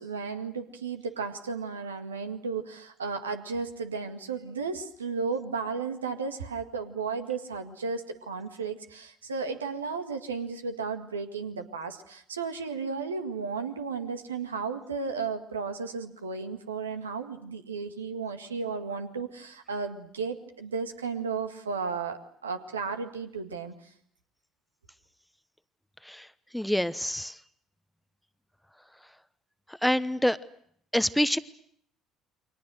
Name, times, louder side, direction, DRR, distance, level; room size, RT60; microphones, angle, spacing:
voice 1, 0.0-23.7, right 5 dB, 80° right, 6 dB, 1.9 m, -34 dB
voice 2, 26.5-27.4 29.8-30.4 30.9-31.4, equal, 5° left, 16 dB, 1.0 m, -26 dB
29.5 x 24.5 x 6.4 m, 0.66 s
figure-of-eight pair, 55°, 0 cm